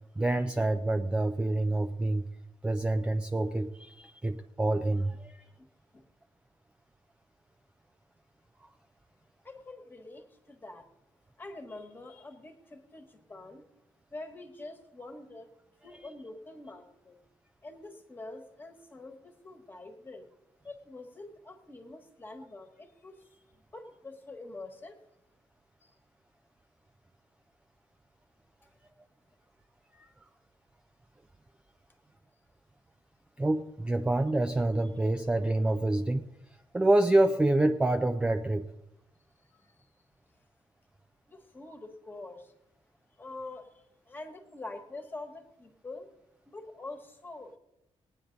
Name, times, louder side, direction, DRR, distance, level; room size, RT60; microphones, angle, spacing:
voice 1, 0.2-2.3 2.6-5.4 16.0-16.1 30.0-30.1 33.4-36.3 36.7-38.7, right 2 dB, 10° right, 8 dB, 0.4 m, -27 dB
voice 2, 9.4-10.8 11.4-13.7 14.1-15.5 15.8-17.2 17.6-20.3 20.6-23.2 23.6-25.0 25.8-25.9 39.5-39.7 41.3-42.5 43.2-46.1 46.4-47.6, left 2 dB, 20° left, 5 dB, 1.4 m, -45 dB
19.0 x 9.3 x 3.9 m, 0.91 s
cardioid pair, 170°, 10 cm